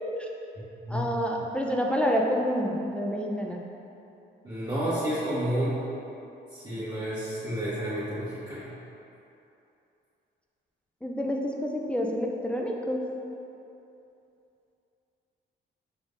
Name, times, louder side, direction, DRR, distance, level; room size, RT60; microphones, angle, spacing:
voice 1, 0.9-3.6 11.0-13.0, equal, 5° left, 0 dB, 0.3 m, -28 dB
voice 2, 4.4-5.9 6.5-8.8, equal, 25° right, -12 dB, 1.0 m, -30 dB
4.7 x 3.6 x 2.5 m, 2.8 s
cardioid pair, 90°, 20 cm